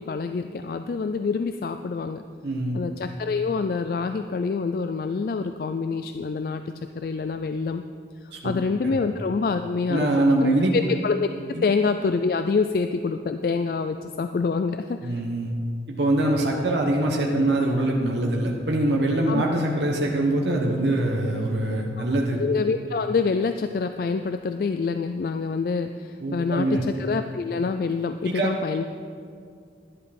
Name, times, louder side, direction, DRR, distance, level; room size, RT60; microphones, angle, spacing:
voice 1, 0.0-2.2 2.7-7.8 8.2-10.1 10.4-11.3 11.6-15.2 19.3-19.4 22.0-28.8, left 4 dB, 55° left, 8 dB, 0.3 m, -26 dB
voice 2, 2.4-2.8 8.3-8.5 8.8-9.0 9.9-10.7 11.5-11.6 15.0-15.5 15.9-22.4 26.2-26.8 28.2-28.5, right 1 dB, 75° right, -1 dB, 1.2 m, -23 dB
11.5 x 11.0 x 4.3 m, 2.3 s
head